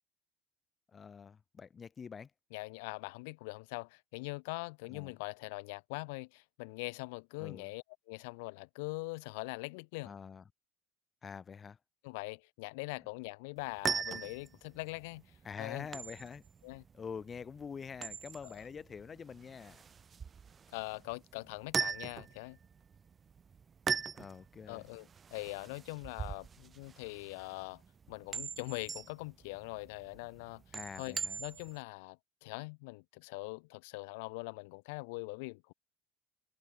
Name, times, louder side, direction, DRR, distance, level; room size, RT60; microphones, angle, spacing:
voice 1, 0.9-2.3 4.9-5.1 7.4-7.7 10.0-10.4 11.2-11.8 15.4-16.4 16.9-19.8 24.1-24.8 30.7-31.4, left 6 dB, 30° left, 2.4 m, -46 dB
voice 2, 2.5-10.2 12.0-15.2 15.6-15.9 16.6-16.8 18.4-18.5 20.7-22.6 24.7-27.8 28.1-30.6 31.0-35.7, left 28 dB, 85° left, 2.7 m, -42 dB
sound 1, 13.6-31.8, right 6 dB, 30° right, 1.0 m, -41 dB
supercardioid pair, 110°, 0 cm